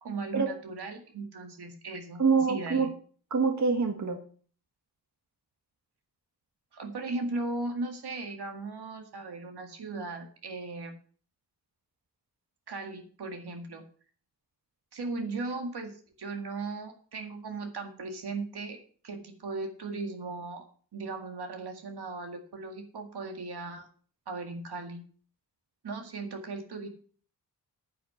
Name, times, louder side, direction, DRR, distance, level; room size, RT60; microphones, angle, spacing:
voice 1, 0.0-2.2 2.5-2.9 6.7-11.0 12.7-13.8 14.9-18.8 19.0-20.7 20.9-23.9 24.3-25.0 25.8-26.9, right 3 dB, 75° right, 5 dB, 2.1 m, -37 dB
voice 2, 2.2-2.9 3.3-4.2, right 5 dB, 45° right, 6 dB, 1.5 m, -25 dB
10.0 x 8.7 x 5.7 m, 0.43 s
wide cardioid pair, 120°, 40 cm